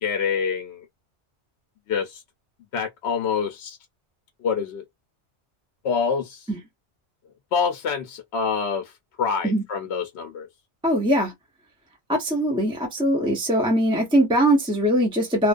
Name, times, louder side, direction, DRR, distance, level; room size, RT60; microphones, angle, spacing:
voice 1, 0.0-0.9 1.9-2.2 2.7-3.8 4.4-4.8 5.8-6.5 7.5-8.9 9.2-10.5, left 6 dB, 70° left, 0.8 m, -26 dB
voice 2, 10.8-11.3 12.1-15.5, equal, 5° right, 0.5 m, -21 dB
2.4 x 2.2 x 2.4 m
omnidirectional pair, 1.2 m